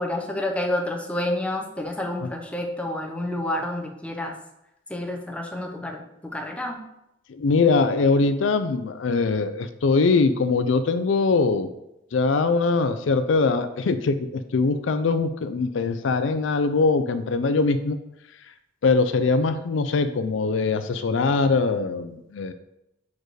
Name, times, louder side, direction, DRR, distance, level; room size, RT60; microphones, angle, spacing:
voice 1, 0.0-4.3 4.9-6.8, left 1 dB, 5° left, 1 dB, 0.7 m, -29 dB
voice 2, 7.3-11.7 12.1-18.0 18.8-22.5, left 4 dB, 70° left, 10 dB, 0.4 m, -22 dB
4.7 x 4.5 x 4.7 m, 0.84 s
head